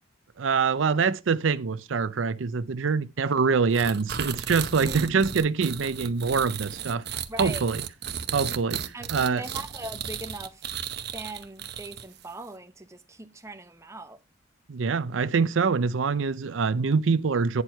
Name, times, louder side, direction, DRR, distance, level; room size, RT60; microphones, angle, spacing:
voice 1, 0.4-7.0 7.4-7.8 8.3-8.8 9.1-9.4 14.7-17.6, right 5 dB, 85° right, 0.5 m, -25 dB
sound 1, 3.7-12.2, right 8 dB, 55° right, 0.9 m, -34 dB
voice 2, 4.8-5.2 7.3-7.6 8.9-10.7 11.1-14.2, right 2 dB, 15° right, 0.8 m, -40 dB
9.6 x 4.5 x 5.6 m
head